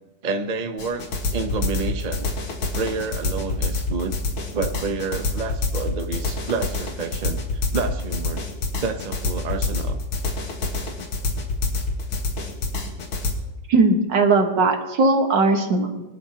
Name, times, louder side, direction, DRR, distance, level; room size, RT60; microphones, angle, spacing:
voice 1, 0.2-2.3 2.7-4.2 4.5-8.4 8.8-10.0, right 4 dB, 85° right, 6 dB, 0.4 m, -29 dB
sound 1, 0.8-13.3, left 3 dB, 80° left, 2.5 m, -26 dB
voice 2, 13.7-16.0, right 3 dB, 60° right, 4 dB, 2.0 m, -19 dB
23.5 x 11.5 x 2.9 m, 1.0 s
omnidirectional pair, 2.3 m